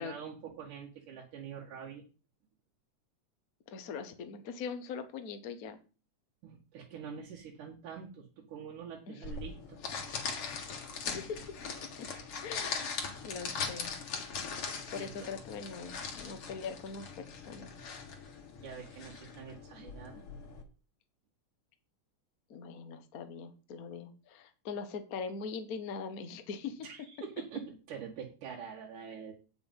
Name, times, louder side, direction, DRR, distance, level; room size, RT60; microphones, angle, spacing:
voice 1, 0.0-2.0 6.4-9.8 14.9-15.3 18.6-20.2 26.8-29.3, right 7 dB, 90° right, -3 dB, 3.3 m, -45 dB
voice 2, 3.7-5.8 9.1-9.2 11.0-12.1 12.4-12.9 13.2-13.9 14.5-17.7 22.5-26.9, left 5 dB, 80° left, 8 dB, 0.8 m, -42 dB
sound 1, 9.2-20.6, left 5 dB, 50° left, 2.5 m, -40 dB
9.1 x 6.9 x 5.4 m, 0.34 s
omnidirectional pair, 3.5 m